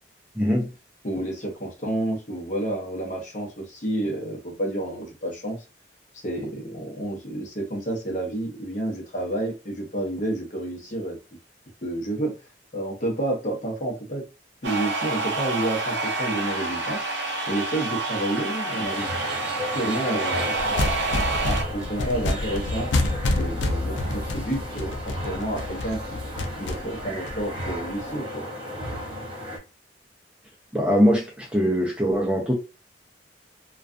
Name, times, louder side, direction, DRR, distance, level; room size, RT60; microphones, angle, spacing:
voice 1, 0.4-0.7 30.7-32.5, equal, 5° right, 0.5 m, -21 dB
voice 2, 1.0-5.6 6.1-11.2 11.8-12.4 12.7-14.3 14.6-17.0 17.5-19.1 19.7-22.9 23.3-26.0 26.6-28.5, right 1 dB, 45° left, 0.8 m, -30 dB
sound 1, 14.6-21.6, right 3 dB, 75° right, 0.7 m, -28 dB
sound 2, 18.8-29.6, equal, 30° right, 0.9 m, -34 dB
sound 3, 20.6-28.0, left 2 dB, 85° left, 0.4 m, -28 dB
2.3 x 2.3 x 2.5 m
head